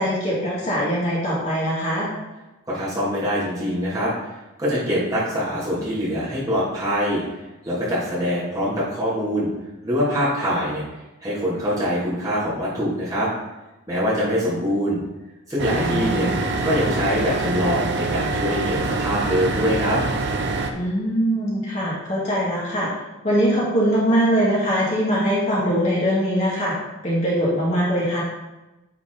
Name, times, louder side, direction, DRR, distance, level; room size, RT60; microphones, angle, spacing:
voice 1, 0.0-2.1 15.7-16.4 20.7-22.9 23.2-26.7 27.0-28.2, equal, 35° left, -6 dB, 2.0 m, -22 dB
voice 2, 2.7-4.3 4.6-7.2 7.6-9.5 9.8-10.8 11.2-13.3 13.9-15.0 15.5-16.3 16.6-20.0, equal, 15° right, -9 dB, 2.8 m, -24 dB
sound 1, 15.6-20.7, right 3 dB, 55° right, 0.8 m, -25 dB
9.5 x 4.6 x 4.1 m, 1.0 s
head